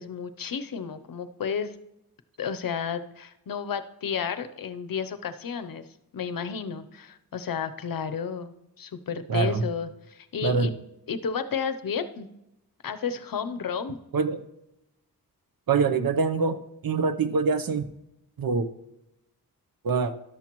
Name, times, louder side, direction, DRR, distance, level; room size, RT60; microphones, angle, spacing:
voice 1, 0.0-1.8 2.4-5.9 6.1-10.7 11.1-12.3 12.8-14.0, left 6 dB, 65° left, 10 dB, 0.7 m, -32 dB
voice 2, 9.3-9.6 10.4-10.7 14.1-14.4 15.7-17.8 18.4-18.7 19.8-20.1, right 5 dB, 65° right, 11 dB, 0.8 m, -24 dB
13.0 x 11.5 x 3.0 m, 0.87 s
wide cardioid pair, 160°, 37 cm